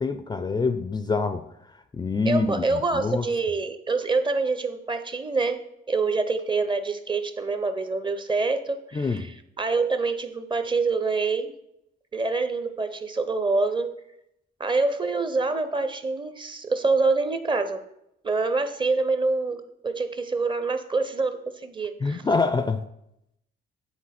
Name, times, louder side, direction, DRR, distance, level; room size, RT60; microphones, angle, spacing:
voice 1, 0.0-1.4 1.9-3.3 8.9-9.3 22.0-22.8, left 4 dB, 20° left, 0.4 m, -25 dB
voice 2, 2.3-5.6 5.9-9.1 9.6-11.5 12.1-13.9 14.6-17.8 18.2-22.2, right 3 dB, 25° right, 0.6 m, -26 dB
8.7 x 3.8 x 4.2 m
cardioid pair, 90°, 20 cm